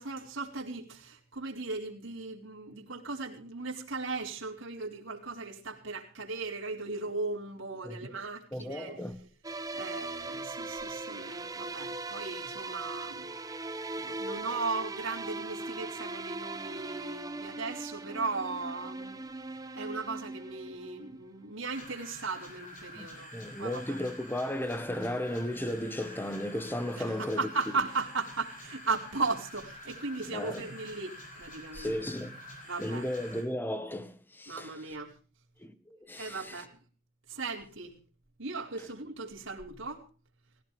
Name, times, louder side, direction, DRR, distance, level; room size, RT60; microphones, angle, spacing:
voice 1, 0.0-9.0 9.7-13.3 14.0-19.2 19.7-23.3 23.6-24.0 27.0-31.9 32.6-33.1 34.5-35.1 36.2-36.8 37.3-37.9 38.4-40.0, right 3 dB, 65° right, 4.7 m, -37 dB
voice 2, 8.5-9.2 22.9-27.5 30.3-30.6 31.7-32.4 32.8-34.8 35.6-35.7 36.0-36.6, left 1 dB, 10° left, 1.3 m, -35 dB
sound 1, 9.4-21.3, right 2 dB, 15° right, 0.8 m, -39 dB
sound 2, 21.7-33.4, left 1 dB, 40° left, 7.7 m, -48 dB
19.0 x 17.5 x 3.4 m
head